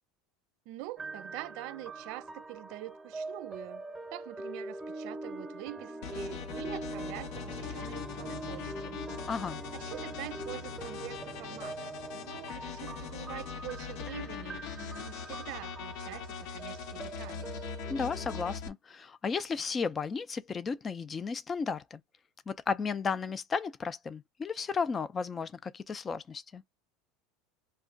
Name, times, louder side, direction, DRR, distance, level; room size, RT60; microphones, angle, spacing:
voice 1, 0.7-3.9 4.1-9.0 9.7-17.6, right 17 dB, 60° right, 0.4 m, -45 dB
sound 1, 1.0-18.6, right 2 dB, 10° right, 0.9 m, -43 dB
sound 2, 6.0-18.7, left 7 dB, 60° left, 0.7 m, -41 dB
voice 2, 9.3-9.6 17.9-22.0 22.5-26.6, left 5 dB, 20° left, 0.4 m, -34 dB
2.4 x 2.2 x 3.7 m
supercardioid pair, 145°, 0 cm